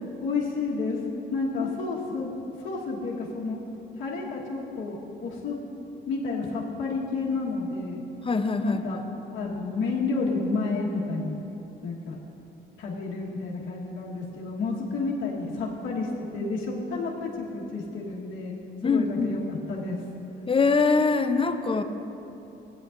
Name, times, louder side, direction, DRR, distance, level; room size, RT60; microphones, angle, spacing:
voice 1, 0.2-1.0 1.3-3.6 4.0-5.6 6.1-8.0 8.6-9.0 9.3-11.4 11.8-12.2 12.8-18.5 18.8-20.0, left 3 dB, 75° left, -6 dB, 1.4 m, -30 dB
voice 2, 8.2-9.0 18.8-19.4 20.5-21.8, left 4 dB, 25° left, 8 dB, 0.6 m, -23 dB
16.5 x 9.1 x 2.6 m, 2.9 s
cardioid pair, 90°, 20 cm